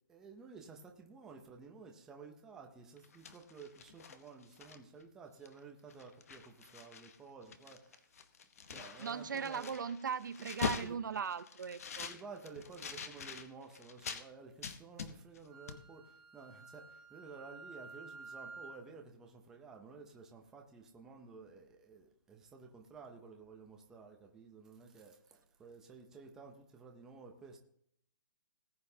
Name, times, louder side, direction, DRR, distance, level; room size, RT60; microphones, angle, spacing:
voice 1, 0.1-8.1 8.7-9.7 10.8-11.0 12.0-27.6, right 4 dB, 5° right, 0.6 m, -53 dB
sound 1, 3.0-5.0 5.4-5.6 5.9-7.2 7.4-14.2 14.6-15.4 15.7-15.8, left 6 dB, 40° left, 1.0 m, -44 dB
voice 2, 9.0-12.1, right 6 dB, 60° right, 0.6 m, -39 dB
Wind instrument woodwind instrument, 15.5-18.9, right 4 dB, 20° right, 1.7 m, -52 dB
19.0 x 8.7 x 2.8 m
hypercardioid pair, 175°, 12 cm